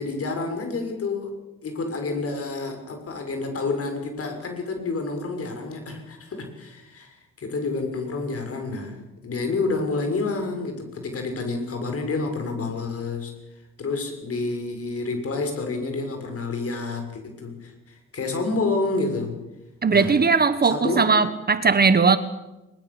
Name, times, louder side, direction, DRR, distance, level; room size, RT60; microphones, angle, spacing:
voice 1, 0.0-1.3 1.6-19.4 19.9-20.2 20.6-21.1, left 3 dB, 50° left, 6.6 m, -29 dB
voice 2, 19.8-22.2, right 5 dB, 30° right, 1.4 m, -19 dB
22.5 x 21.5 x 7.3 m
cardioid pair, 90°, 30 cm